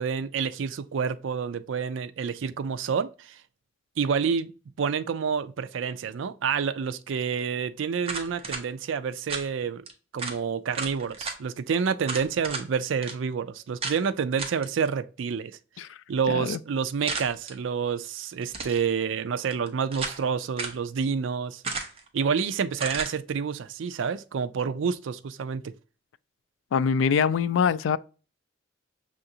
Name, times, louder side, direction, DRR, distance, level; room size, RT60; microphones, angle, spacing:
voice 1, 0.0-3.4 4.0-4.5 4.8-9.8 10.1-15.6 16.1-21.6 22.1-25.7, right 6 dB, 75° right, 0.4 m, -28 dB
sound 1, 8.0-8.6 9.3-9.5 9.9-10.0 10.2-10.4 10.7-11.4 12.1-12.7 13.0-13.1 13.8-14.0 14.4-14.7 17.1-17.6 18.4-18.8 19.5-20.2 20.6-20.8 21.6-22.1 22.8-23.1, right 4 dB, 30° right, 0.8 m, -33 dB
voice 2, 16.3-16.6 26.7-28.0, left 6 dB, 75° left, 0.3 m, -23 dB
6.6 x 2.5 x 2.6 m
head